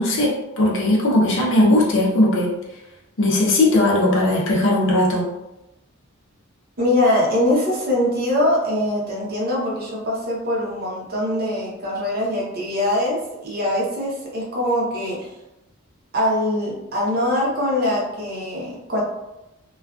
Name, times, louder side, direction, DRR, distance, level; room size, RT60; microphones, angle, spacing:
voice 1, 0.0-2.5 3.2-5.3, left 1 dB, 60° left, -2 dB, 0.6 m, -18 dB
voice 2, 6.8-15.3 16.1-19.0, left 1 dB, 45° right, -4 dB, 0.7 m, -22 dB
2.4 x 2.3 x 2.3 m, 0.93 s
head